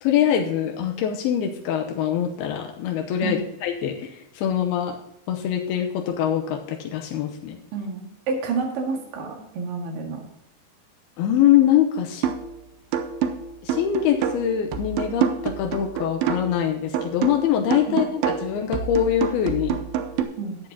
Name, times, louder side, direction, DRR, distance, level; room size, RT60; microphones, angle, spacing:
voice 1, 0.0-5.0 5.3-7.6 11.2-12.3 13.6-19.8, left 10 dB, 90° left, 3 dB, 2.8 m, -23 dB
voice 2, 7.7-10.2 17.9-18.0 20.4-20.6, right 4 dB, 70° right, 1 dB, 3.5 m, -29 dB
sound 1, 12.2-12.6 12.9-16.6 16.9-20.2, right 8 dB, 85° right, 2.7 m, -27 dB
14.0 x 9.7 x 2.8 m, 0.85 s
omnidirectional pair, 4.4 m